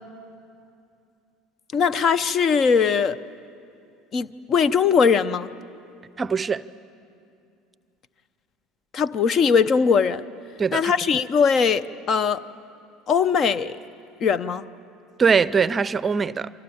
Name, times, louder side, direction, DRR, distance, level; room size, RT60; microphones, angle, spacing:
voice 1, 1.7-3.2 4.1-5.5 8.9-10.2 10.7-12.4 13.1-13.8 14.2-14.6, left 6 dB, 45° left, 0.7 m, -20 dB
voice 2, 6.2-6.6 10.6-10.9 15.2-16.5, right 5 dB, 30° right, 0.5 m, -21 dB
29.5 x 24.5 x 7.3 m
hypercardioid pair, 70°, 0 cm